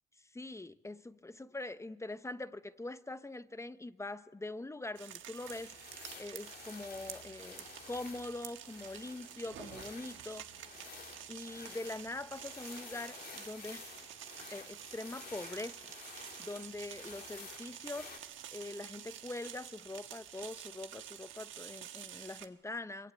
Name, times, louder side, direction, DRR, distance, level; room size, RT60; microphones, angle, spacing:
voice 1, 0.3-10.5 11.3-14.1 14.5-23.1, left 2 dB, 15° left, 0.8 m, -43 dB
sound 1, 5.0-22.5, right 10 dB, 75° right, 1.4 m, -49 dB
sound 2, 5.4-18.2, left 5 dB, 50° left, 3.0 m, -52 dB
23.0 x 23.0 x 9.1 m
cardioid pair, 90°, 20 cm